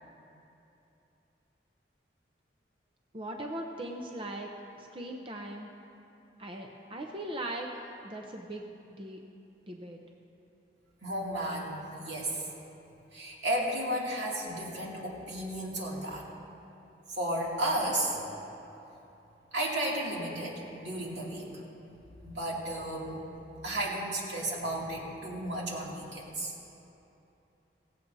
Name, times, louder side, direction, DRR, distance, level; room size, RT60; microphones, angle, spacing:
voice 1, 3.1-4.5 4.8-5.7 6.4-7.7 8.0-9.2 9.7-10.0, right 1 dB, 30° right, 1 dB, 0.6 m, -39 dB
voice 2, 11.0-12.5 13.1-16.3 17.1-18.2 19.5-21.5 22.2-23.2 23.6-26.5, right 1 dB, 85° right, -4 dB, 2.5 m, -33 dB
16.5 x 16.0 x 2.7 m, 2.9 s
head